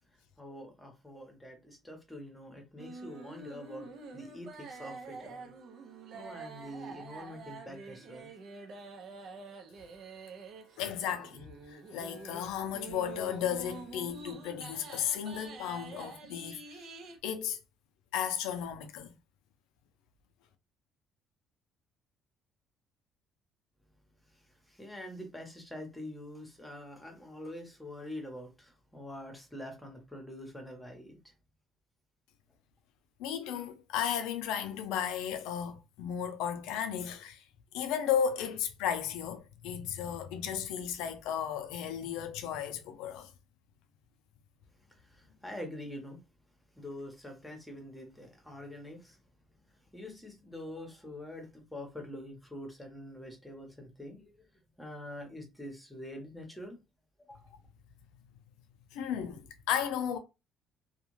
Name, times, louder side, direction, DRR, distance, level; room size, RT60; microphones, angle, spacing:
voice 1, 0.4-3.9 4.1-5.5 6.1-8.3 24.3-31.2 44.9-46.2 46.7-49.2 49.9-54.4 54.8-56.8 57.2-57.5, left 1 dB, 5° left, 1.0 m, -45 dB
sound 1, 2.8-17.2, right 4 dB, 60° right, 0.6 m, -47 dB
voice 2, 10.8-16.8 17.2-17.6 18.1-19.1 33.2-37.4 37.7-43.3 58.9-60.2, left 9 dB, 90° left, 0.5 m, -34 dB
2.4 x 2.2 x 3.1 m
cardioid pair, 100°, 0 cm